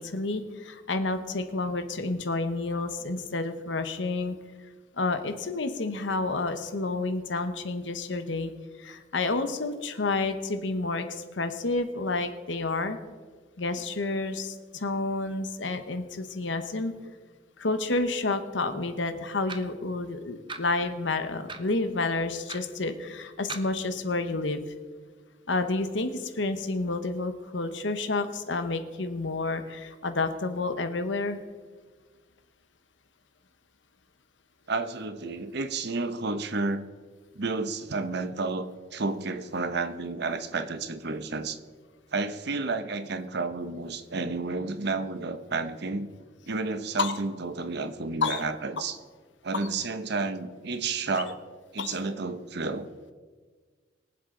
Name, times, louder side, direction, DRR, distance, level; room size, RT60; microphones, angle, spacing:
voice 1, 0.0-4.4 5.0-8.5 8.8-13.0 13.6-16.9 17.6-24.6 25.5-31.4 47.0-47.2 48.2-48.4 51.8-52.0, left 3 dB, 75° left, 9 dB, 1.0 m, -30 dB
sound 1, 19.5-19.8 20.5-20.6 21.5-21.7 22.5-22.6 23.5-23.7, right 4 dB, 25° right, 0.9 m, -38 dB
voice 2, 34.7-36.9 37.3-41.6 42.1-46.1 46.5-49.0 49.4-51.4 51.7-52.9, right 3 dB, 60° right, 10 dB, 0.9 m, -31 dB
23.0 x 7.8 x 3.8 m, 1.5 s
head